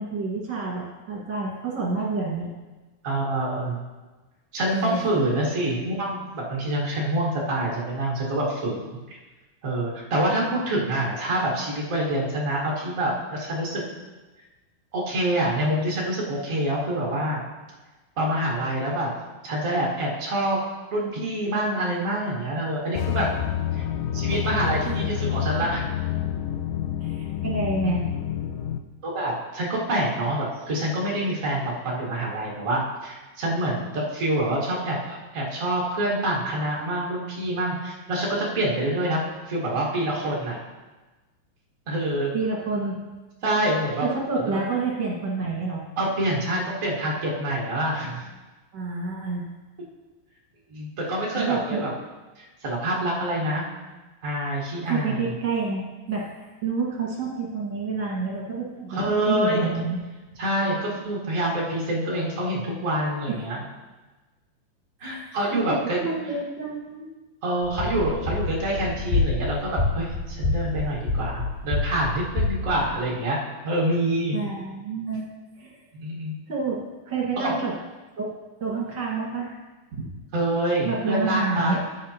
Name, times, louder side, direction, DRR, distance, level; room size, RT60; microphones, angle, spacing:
voice 1, 0.0-2.5 4.7-5.0 24.8-25.0 25.3-25.7 27.0-28.1 42.3-43.0 44.0-45.8 48.7-49.4 51.4-51.8 54.9-59.0 59.3-60.0 63.3-63.4 65.0-65.3 65.6-67.1 74.3-75.3 75.6-75.8 76.5-76.8 77.1-77.7 78.2-78.3 78.6-79.5 79.9-80.1 80.8-81.8, right 4 dB, 45° right, -3 dB, 1.7 m, -28 dB
voice 2, 3.0-3.8 4.5-8.8 9.6-13.8 14.9-17.4 18.2-19.1 19.4-20.6 20.9-23.3 23.7-23.8 24.1-25.8 29.0-39.2 39.5-40.6 41.9-42.3 43.4-44.1 44.4-44.6 46.0-48.2 50.7-51.9 52.4-53.6 54.2-55.3 58.9-59.7 60.4-63.6 65.0-66.0 67.4-74.4 75.9-76.3 77.4-77.6 80.3-81.8, right 1 dB, 85° right, -4 dB, 0.7 m, -26 dB
sound 1, 23.0-28.8, left 10 dB, 85° left, 2.1 m, -28 dB
sound 2, 67.6-72.9, left 3 dB, 65° left, 3.0 m, -27 dB
14.0 x 7.3 x 2.9 m, 1.2 s
omnidirectional pair, 4.6 m